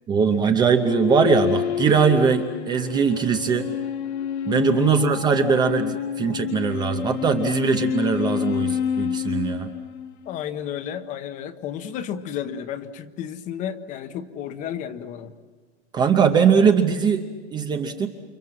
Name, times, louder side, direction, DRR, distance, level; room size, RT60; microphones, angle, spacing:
voice 1, 0.1-3.7 4.4-9.7 15.9-17.2 17.5-18.1, right 6 dB, 10° right, 7 dB, 0.7 m, -21 dB
sound 1, 0.7-10.4, left 9 dB, 65° left, 1.9 m, -28 dB
voice 2, 4.7-5.1 10.3-15.3, left 9 dB, 20° left, 11 dB, 0.9 m, -32 dB
29.0 x 26.0 x 7.5 m, 1.4 s
supercardioid pair, 170°, 34 cm